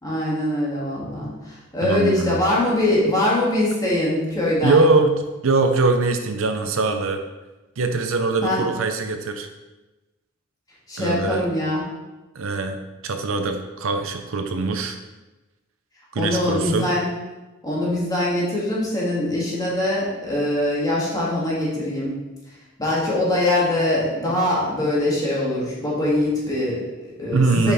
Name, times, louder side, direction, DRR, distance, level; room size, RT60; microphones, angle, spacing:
voice 1, 0.0-4.9 8.4-8.6 10.9-11.8 16.2-17.1 17.6-22.1 22.8-27.7, left 1 dB, 20° left, -6 dB, 2.1 m, -23 dB
voice 2, 1.8-2.4 4.6-5.1 5.4-7.2 7.8-9.5 11.0-11.5 12.3-12.8 13.0-15.0 16.1-16.9 27.3-27.7, right 3 dB, 70° right, 6 dB, 0.6 m, -22 dB
5.9 x 5.3 x 4.1 m, 1.1 s
head